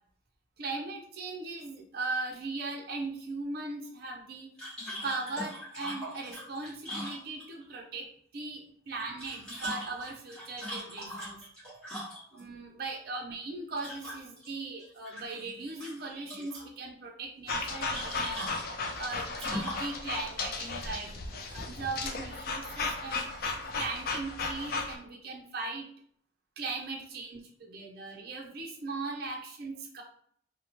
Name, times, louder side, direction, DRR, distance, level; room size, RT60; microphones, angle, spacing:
voice 1, 0.6-4.5 5.0-8.1 8.3-11.4 12.3-18.4 19.0-23.3 23.7-25.9 26.6-30.0, right 3 dB, 50° right, 0 dB, 0.5 m, -38 dB
sound 1, 4.6-7.7 9.0-12.4 13.8-14.5 14.8-15.5 15.8-16.7 17.9-19.9, equal, 5° left, 1.1 m, -40 dB
sound 2, 17.5-25.0, left 3 dB, 50° left, 0.4 m, -35 dB
2.8 x 2.0 x 2.9 m, 0.62 s
head